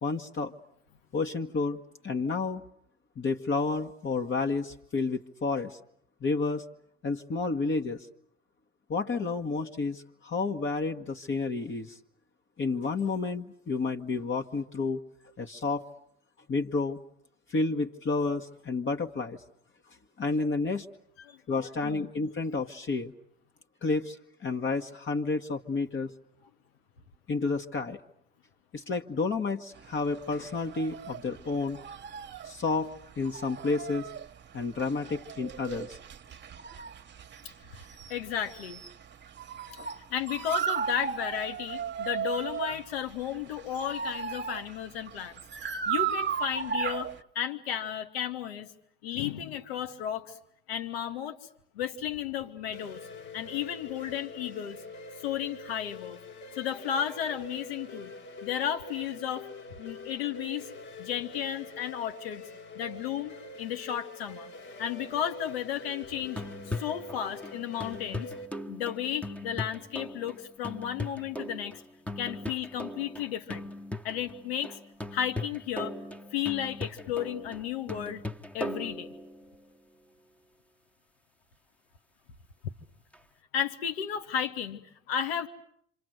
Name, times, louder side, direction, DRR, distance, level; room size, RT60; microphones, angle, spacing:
voice 1, 0.0-0.5 1.1-2.6 3.2-5.8 6.2-6.6 7.0-8.1 8.9-12.0 12.6-15.0 15.4-15.9 16.5-17.0 17.5-19.4 20.2-20.9 21.5-23.1 23.8-26.1 27.3-28.0 28.7-31.8 32.4-34.1 34.5-36.0, left 3 dB, 40° left, 3 dB, 1.5 m, -30 dB
voice 2, 21.2-22.1 37.8-38.8 40.1-48.7 49.0-50.4 50.7-51.4 51.7-53.0 53.3-54.8 55.2-56.2 56.5-58.1 58.4-59.5 59.8-60.7 61.0-62.4 62.7-64.5 64.8-68.3 68.7-71.8 72.2-73.7 74.0-74.8 75.1-75.9 76.3-78.2 78.5-79.1 82.6-82.7 83.5-85.5, left 9 dB, 90° left, 8 dB, 1.4 m, -33 dB
sound 1, 29.8-47.2, right 8 dB, 40° right, 1.1 m, -36 dB
sound 2, 52.7-68.5, left 2 dB, 70° left, 4.5 m, -45 dB
sound 3, 66.2-79.6 83.1-83.2, left 1 dB, 5° left, 1.2 m, -39 dB
27.0 x 26.5 x 7.9 m, 0.70 s
hypercardioid pair, 60°, 29 cm